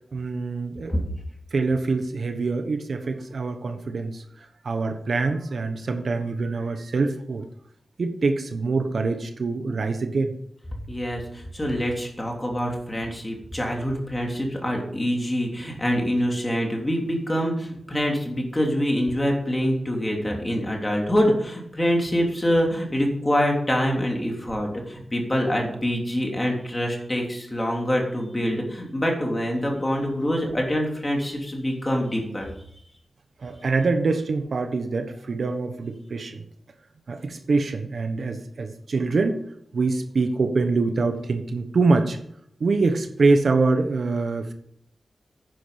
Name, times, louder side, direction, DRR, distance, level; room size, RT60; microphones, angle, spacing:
voice 1, 0.1-1.0 1.5-7.4 8.0-10.3 33.4-36.4 37.1-39.4 39.7-42.2 42.6-44.5, right 3 dB, 60° right, 7 dB, 1.3 m, -24 dB
voice 2, 10.9-32.5, equal, 15° left, 0 dB, 3.2 m, -25 dB
10.5 x 10.0 x 5.2 m, 0.70 s
wide cardioid pair, 135°, 0 cm